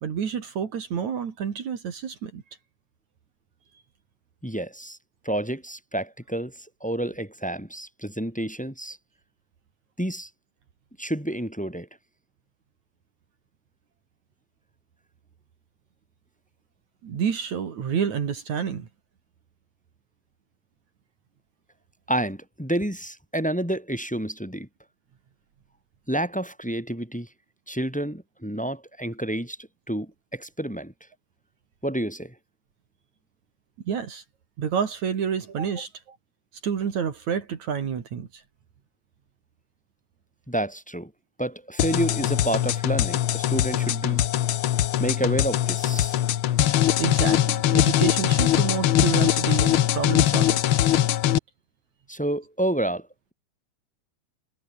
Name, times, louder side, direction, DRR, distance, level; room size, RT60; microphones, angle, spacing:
voice 1, 0.0-2.4 17.0-18.9 33.9-34.2 34.6-36.2 36.6-38.4 47.0-50.6, right 7 dB, 60° right, 3.6 m, -29 dB
voice 2, 4.4-5.0 5.2-6.5 6.8-9.0 10.0-10.3 11.0-11.9 22.1-24.7 26.1-27.3 27.7-29.6 29.9-30.9 31.8-32.3 40.5-41.1 41.4-44.2 45.0-46.2 52.1-53.1, right 1 dB, ahead, 4.9 m, -29 dB
sound 1, 41.8-51.4, left 12 dB, 90° left, 1.1 m, -22 dB
omnidirectional pair, 3.7 m